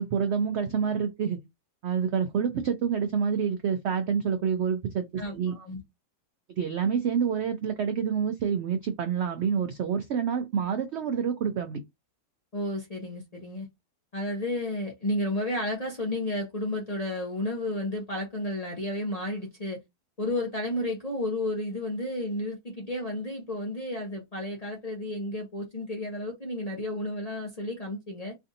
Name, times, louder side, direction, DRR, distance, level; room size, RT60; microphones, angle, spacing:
voice 1, 0.0-1.4 1.8-5.5 6.6-11.8, right 7 dB, 75° right, 0.6 m, -27 dB
voice 2, 5.2-5.8 12.5-13.7 14.1-19.8 20.2-28.3, left 1 dB, 40° left, 0.6 m, -32 dB
3.3 x 2.5 x 2.6 m
omnidirectional pair, 1.7 m